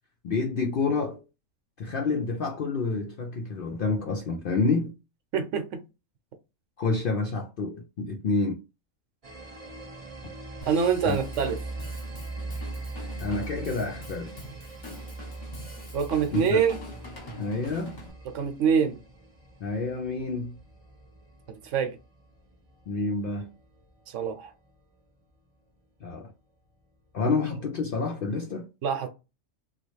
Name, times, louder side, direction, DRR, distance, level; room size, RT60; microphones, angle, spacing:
voice 1, 0.2-1.2 1.8-4.9 6.8-8.6 11.0-11.2 13.2-14.3 16.3-16.6 17.4-18.0 19.6-20.6 22.9-23.5 26.0-26.3 27.1-28.7, left 4 dB, 65° left, 0.5 m, -28 dB
voice 2, 5.3-5.8 10.7-11.6 15.9-16.8 18.3-19.0 21.5-22.0 24.1-24.5 28.8-29.1, right 7 dB, 70° right, 0.9 m, -25 dB
sound 1, 9.2-24.7, right 2 dB, 35° right, 0.7 m, -41 dB
Drum kit / Drum, 10.6-18.1, left 2 dB, 35° left, 1.0 m, -44 dB
3.0 x 2.4 x 3.1 m
omnidirectional pair, 1.4 m